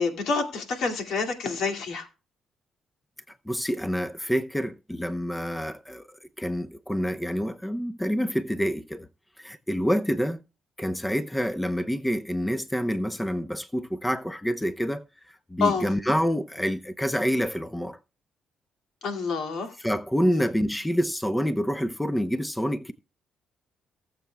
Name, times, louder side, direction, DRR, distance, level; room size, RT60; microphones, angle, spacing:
voice 1, 0.0-2.1 15.6-15.9 19.0-19.7 20.3-20.4, left 4 dB, 75° left, 2.3 m, -27 dB
voice 2, 3.5-6.1 6.4-9.1 9.4-10.4 10.8-18.0 19.8-22.9, equal, 5° left, 0.7 m, -27 dB
18.5 x 7.4 x 2.2 m
cardioid pair, 90°, 0 cm